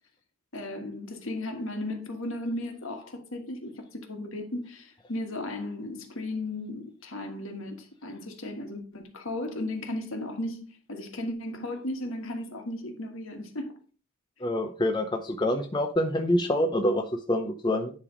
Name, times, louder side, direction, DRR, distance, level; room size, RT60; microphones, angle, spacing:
voice 1, 0.5-13.7, left 1 dB, 65° left, 1.5 m, -35 dB
voice 2, 14.4-17.9, left 1 dB, 20° left, 0.5 m, -26 dB
9.9 x 3.4 x 5.0 m
head